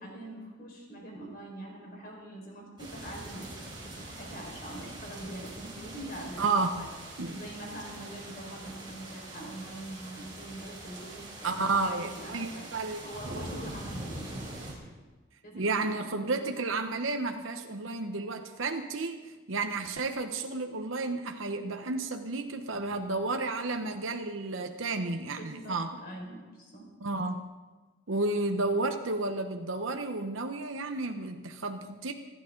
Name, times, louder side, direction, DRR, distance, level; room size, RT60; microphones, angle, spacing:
voice 1, 0.0-6.5 7.2-12.7 13.0-14.5 15.4-16.3 25.3-27.0, right 1 dB, 45° left, -1 dB, 4.8 m, -43 dB
sound 1, 2.8-14.7, right 2 dB, 25° right, 4.0 m, -43 dB
voice 2, 6.4-6.7 7.2-7.4 11.4-13.0 15.5-26.0 27.0-27.4 28.1-32.1, right 3 dB, 80° right, 5 dB, 0.9 m, -32 dB
27.0 x 11.0 x 3.8 m, 1.3 s
head